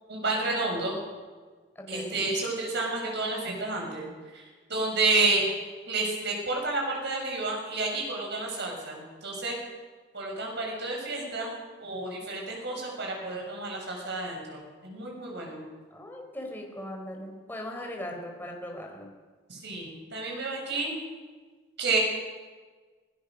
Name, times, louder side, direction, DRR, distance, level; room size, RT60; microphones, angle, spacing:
voice 1, 0.1-0.9 1.9-4.0 4.3-4.4 4.7-5.5 5.9-9.6 10.1-15.6 19.5-20.9 21.8-22.0, right 3 dB, 65° right, 0 dB, 7.1 m, -30 dB
voice 2, 1.8-2.2 15.9-19.1, left 1 dB, 10° left, 1 dB, 4.1 m, -39 dB
25.5 x 17.0 x 6.5 m, 1.4 s
head